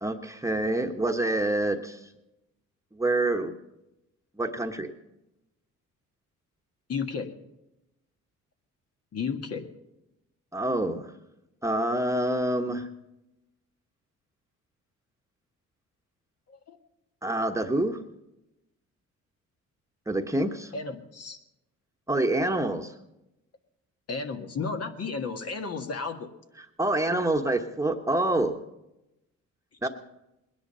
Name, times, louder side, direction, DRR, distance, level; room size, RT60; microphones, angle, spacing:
voice 1, 0.0-2.0 2.9-3.5 4.4-4.9 10.5-11.1 11.6-12.9 17.2-18.0 20.1-20.7 22.1-22.9 26.8-28.5 29.8-29.9, right 1 dB, 10° right, 4 dB, 1.2 m, -26 dB
voice 2, 6.9-7.4 9.1-9.7 16.5-16.8 20.7-21.4 24.1-26.3 29.8-29.9, left 5 dB, 55° left, 5 dB, 1.7 m, -33 dB
20.0 x 10.5 x 5.6 m, 0.92 s
cardioid pair, 90°, 30 cm